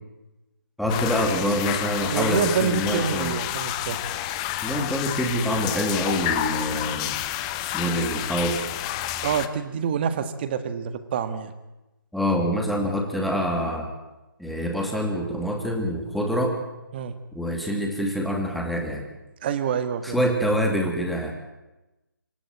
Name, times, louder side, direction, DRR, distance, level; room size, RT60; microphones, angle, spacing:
voice 1, 0.8-3.4 4.6-7.2 7.7-8.7 12.1-13.9 14.4-16.6 17.3-19.0 20.0-21.3, equal, ahead, 1 dB, 2.4 m, -26 dB
sound 1, 0.9-9.5, left 13 dB, 15° left, 0.8 m, -29 dB
voice 2, 2.1-4.0 9.2-11.5 16.9-17.2 19.4-20.2, right 7 dB, 30° right, 11 dB, 1.6 m, -27 dB
26.5 x 12.5 x 9.2 m, 1.0 s
figure-of-eight pair, 150°, 11 cm